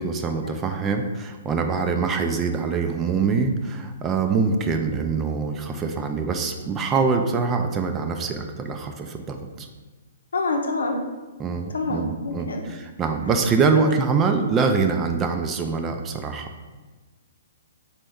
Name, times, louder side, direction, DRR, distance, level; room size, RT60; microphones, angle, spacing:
voice 1, 0.0-9.7 11.4-16.5, right 4 dB, 20° right, 5 dB, 0.3 m, -24 dB
voice 2, 10.3-11.0 11.7-12.6, left 3 dB, 85° left, 3 dB, 0.7 m, -26 dB
4.1 x 3.4 x 3.5 m, 1.3 s
hypercardioid pair, 135°, 0 cm